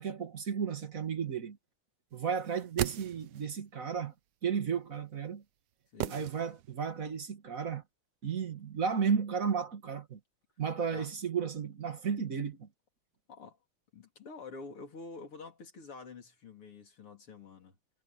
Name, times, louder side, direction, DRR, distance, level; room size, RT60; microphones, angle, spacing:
voice 1, 0.0-1.6 2.1-4.1 4.4-5.4 6.1-7.8 8.2-10.2 10.6-12.7, right 6 dB, 40° right, 2.0 m, -33 dB
sound 1, 2.4-3.6 6.0-6.9 7.2-7.3, right 13 dB, 70° right, 1.1 m, -37 dB
voice 2, 13.3-13.6 13.9-17.8, left 4 dB, 85° left, 4.7 m, -48 dB
omnidirectional pair, 2.4 m